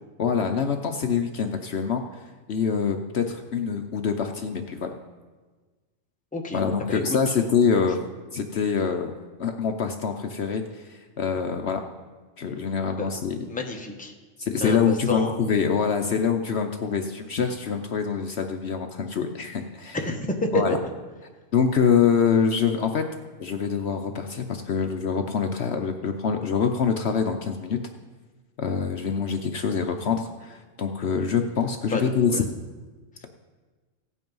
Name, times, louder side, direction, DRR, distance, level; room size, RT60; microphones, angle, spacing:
voice 1, 0.2-2.0 2.5-5.0 6.5-8.0 8.3-9.1 9.4-11.8 12.4-13.4 14.4-20.0 20.5-20.8 21.5-23.0 23.4-27.8 28.6-32.4, left 6 dB, 60° left, 5 dB, 0.9 m, -25 dB
voice 2, 13.5-14.1 14.6-15.4 19.9-20.3 20.5-20.8 31.9-32.0 32.3-32.4, left 2 dB, 5° left, 2 dB, 1.0 m, -29 dB
16.0 x 8.6 x 5.4 m, 1.4 s
omnidirectional pair, 1.4 m